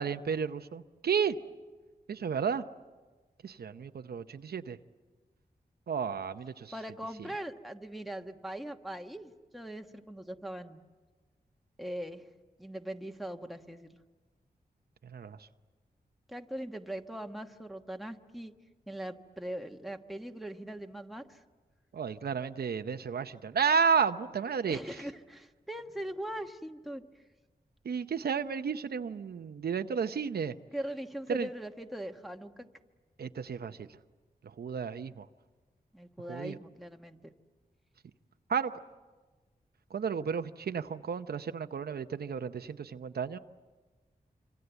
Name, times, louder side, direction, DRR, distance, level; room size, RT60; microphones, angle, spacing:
voice 1, 0.0-1.4 2.1-2.6 3.4-4.8 5.9-6.7 15.0-15.4 21.9-24.8 27.8-30.5 31.3-31.5 33.2-33.9 34.4-35.3 36.3-36.6 38.5-38.8 39.9-43.4, right 6 dB, 80° right, 9 dB, 0.8 m, -32 dB
voice 2, 6.7-10.8 11.8-12.3 12.6-14.0 16.3-18.5 18.9-21.4 24.7-27.0 30.7-32.7 35.9-37.3, right 1 dB, ahead, 4 dB, 1.3 m, -41 dB
26.5 x 26.0 x 8.1 m, 1.3 s
wide cardioid pair, 95°, 16 cm